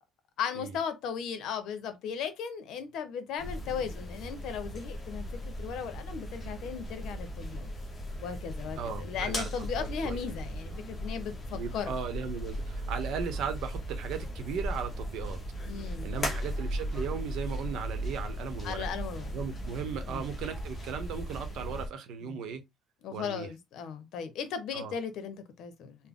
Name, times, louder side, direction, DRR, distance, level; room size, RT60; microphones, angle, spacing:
voice 1, 0.4-7.7 8.2-11.9 15.6-16.4 18.6-19.3 20.1-20.3 22.2-22.4 23.0-26.1, left 7 dB, 55° left, 0.8 m, -37 dB
sound 1, 3.4-21.9, equal, 20° left, 1.0 m, -37 dB
voice 2, 8.8-10.2 11.5-15.4 16.0-18.8 19.3-22.6 23.1-23.5 24.7-24.9, right 6 dB, 55° right, 0.8 m, -37 dB
4.0 x 2.1 x 3.7 m
cardioid pair, 170°, 0 cm